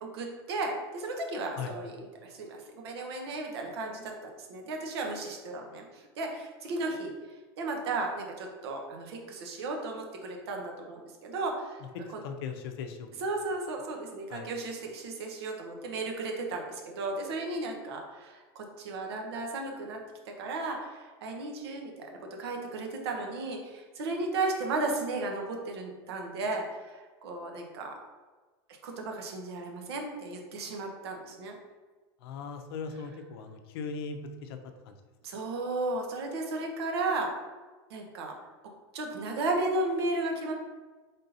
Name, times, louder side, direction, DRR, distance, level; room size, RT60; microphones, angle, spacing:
voice 1, 0.0-4.1 4.5-7.1 7.6-11.8 13.2-20.0 20.3-21.9 22.2-28.0 28.8-31.5 35.2-37.3 37.9-38.3 38.9-40.5, right 2 dB, 80° right, 2 dB, 0.9 m, -34 dB
voice 2, 12.0-13.1 14.3-14.5 32.2-34.6 34.9-35.0, left 5 dB, 70° left, 6 dB, 0.5 m, -39 dB
3.7 x 2.7 x 4.0 m, 1.3 s
supercardioid pair, 135°, 13 cm